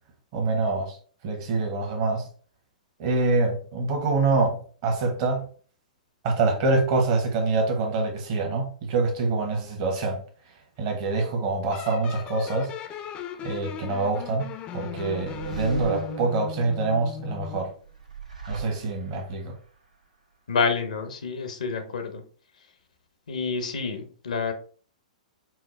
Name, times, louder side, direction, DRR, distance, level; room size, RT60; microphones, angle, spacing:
voice 1, 0.3-1.0 1.2-2.3 3.0-5.5 6.2-10.2 10.8-12.7 13.4-17.7 18.5-19.5, right 3 dB, 45° right, 1.1 m, -25 dB
sound 1, 11.7-17.7, left 8 dB, 30° left, 0.4 m, -38 dB
sound 2, 14.9-16.8 17.8-19.3, right 4 dB, 85° right, 0.9 m, -36 dB
voice 2, 20.5-22.2 23.3-24.5, left 5 dB, 75° left, 0.7 m, -28 dB
4.5 x 2.0 x 3.2 m
hypercardioid pair, 115°, 4 cm